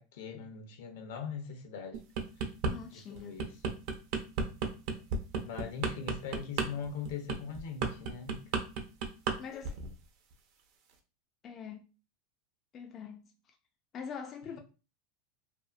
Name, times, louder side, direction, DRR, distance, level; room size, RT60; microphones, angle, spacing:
voice 1, 0.0-2.0 2.4-2.5 2.8-3.7 5.4-8.5, left 6 dB, 75° left, 0.7 m, -41 dB
sound 1, 1.9-2.7 3.2-9.4 9.6-9.9, right 4 dB, 60° right, 0.6 m, -33 dB
voice 2, 2.7-3.4 9.4-9.8 11.4-11.9 12.7-13.3 13.9-14.6, left 7 dB, 30° left, 0.3 m, -43 dB
2.7 x 2.4 x 2.4 m
supercardioid pair, 135°, 0 cm